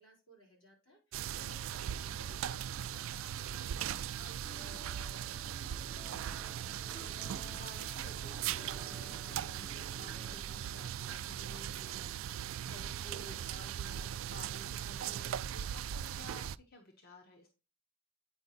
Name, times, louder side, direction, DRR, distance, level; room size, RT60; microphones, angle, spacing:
voice 1, 0.0-5.2, equal, 80° left, -2 dB, 4.3 m, -60 dB
sound 1, 1.1-16.6, right 10 dB, 85° right, 0.3 m, -39 dB
sound 2, 4.4-10.4, left 3 dB, 15° left, 0.5 m, -55 dB
voice 2, 5.9-17.5, left 1 dB, 50° left, 2 dB, 1.0 m, -55 dB
8.9 x 4.9 x 4.0 m, 0.30 s
head